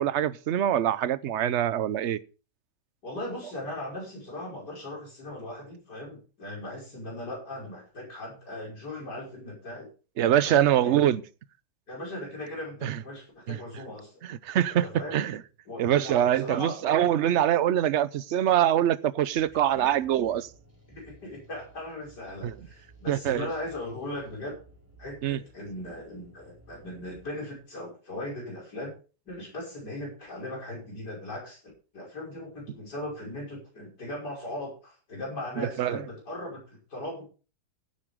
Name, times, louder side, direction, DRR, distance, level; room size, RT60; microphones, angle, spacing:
voice 1, 0.0-2.2 10.2-11.2 12.8-13.0 13.5-13.6 14.2-15.4 15.8-20.5 22.4-22.5 23.1-23.5 25.2-25.4 35.6-36.0, right 11 dB, 60° right, 0.8 m, -24 dB
voice 2, 3.0-9.9 10.4-11.0 11.9-14.1 14.7-15.2 15.7-16.9 19.8-19.9 20.9-24.6 25.0-28.9 29.3-31.6 31.9-37.3, left 1 dB, 85° left, 6.3 m, -38 dB
sound 1, 19.4-27.3, right 1 dB, 10° right, 3.9 m, -56 dB
16.0 x 9.8 x 3.6 m
omnidirectional pair, 1.7 m